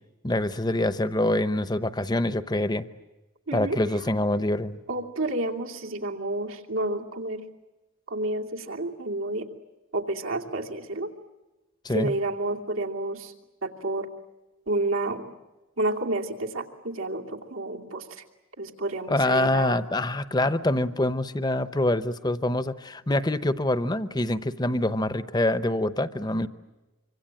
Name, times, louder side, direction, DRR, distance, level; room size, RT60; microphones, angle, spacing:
voice 1, 0.2-2.9 3.5-4.8 11.8-12.1 19.1-26.5, left 1 dB, 20° left, 13 dB, 0.8 m, -25 dB
voice 2, 3.5-3.8 4.9-7.4 8.1-9.5 9.9-11.1 11.9-13.3 13.6-14.1 14.7-15.2 15.8-18.2 18.6-19.8, right 2 dB, 85° right, 1 dB, 2.7 m, -30 dB
25.5 x 25.5 x 8.9 m, 1.1 s
head